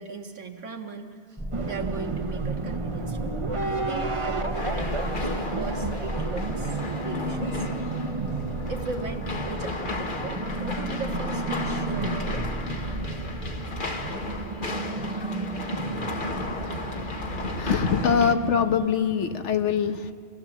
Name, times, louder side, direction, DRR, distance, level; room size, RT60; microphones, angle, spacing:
voice 1, 0.0-3.3 3.6-7.7 8.7-12.5 18.0-18.2, right 4 dB, 85° right, 3 dB, 2.0 m, -38 dB
sound 1, 1.4-14.7, right 1 dB, ahead, 0.6 m, -37 dB
sound 2, 1.5-18.8, right 3 dB, 30° right, 0.9 m, -33 dB
sound 3, 4.5-18.3, left 3 dB, 45° left, 1.5 m, -33 dB
voice 2, 17.6-20.1, left 7 dB, 75° left, 8 dB, 1.3 m, -23 dB
28.0 x 17.0 x 7.3 m, 2.3 s
omnidirectional pair, 1.2 m